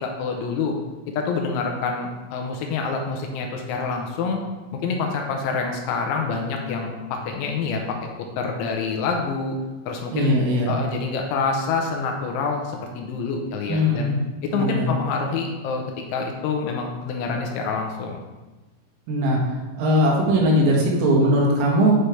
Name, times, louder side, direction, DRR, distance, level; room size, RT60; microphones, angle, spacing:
voice 1, 0.0-0.8 1.2-4.4 4.7-8.0 8.4-9.6 9.9-14.1 14.4-15.8 16.1-18.2, left 4 dB, 80° left, 2 dB, 3.0 m, -27 dB
voice 2, 10.1-10.7 13.7-14.2 14.5-14.9 19.1-19.4 19.8-21.9, equal, 80° right, -2 dB, 4.1 m, -19 dB
9.1 x 5.6 x 3.4 m, 1.2 s
omnidirectional pair, 5.8 m